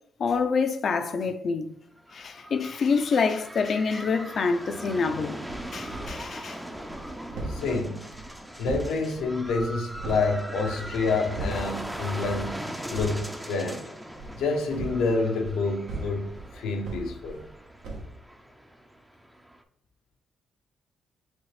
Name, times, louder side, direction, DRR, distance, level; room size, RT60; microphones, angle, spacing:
voice 1, 0.2-1.7 2.1-5.4 5.7-6.6, left 5 dB, 50° left, 0.5 m, -26 dB
sound 1, 2.0-19.6, equal, 5° right, 0.5 m, -40 dB
sound 2, 5.4-6.3 6.7-10.3 10.7-11.8 12.2-12.5 12.8-13.2 14.1-17.6 17.8-18.1, right 2 dB, 75° right, 1.1 m, -38 dB
voice 2, 7.5-8.1 8.6-12.6 12.9-13.9 14.4-16.3 16.5-17.4, left 3 dB, 85° left, 0.8 m, -28 dB
6.0 x 2.4 x 3.2 m
cardioid pair, 90°, 0 cm